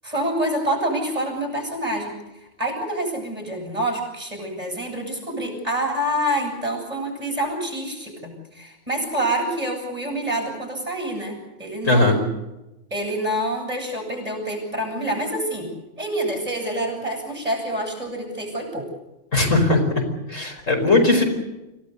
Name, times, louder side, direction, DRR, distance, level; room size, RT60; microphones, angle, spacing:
voice 1, 0.0-12.2 12.9-15.7 16.0-18.9, right 1 dB, 25° right, 2 dB, 7.9 m, -27 dB
voice 2, 11.9-12.2 19.3-19.8 20.3-21.2, left 2 dB, 70° left, 4 dB, 5.2 m, -18 dB
26.5 x 17.5 x 8.2 m, 0.98 s
omnidirectional pair, 1.4 m